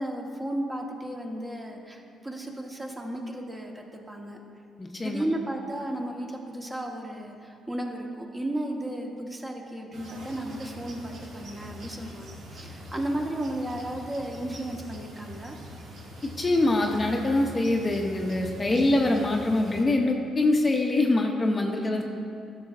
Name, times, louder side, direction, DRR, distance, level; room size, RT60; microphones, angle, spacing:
voice 1, 0.0-4.4 5.0-15.6 18.7-19.1 21.8-22.0, right 1 dB, 20° right, 1 dB, 1.0 m, -34 dB
voice 2, 4.8-5.2 16.4-22.0, left 2 dB, 25° left, 2 dB, 0.6 m, -24 dB
sound 1, 9.9-19.8, equal, 70° right, 1.2 m, -43 dB
13.0 x 6.1 x 2.5 m, 2.5 s
cardioid pair, 90°, 0 cm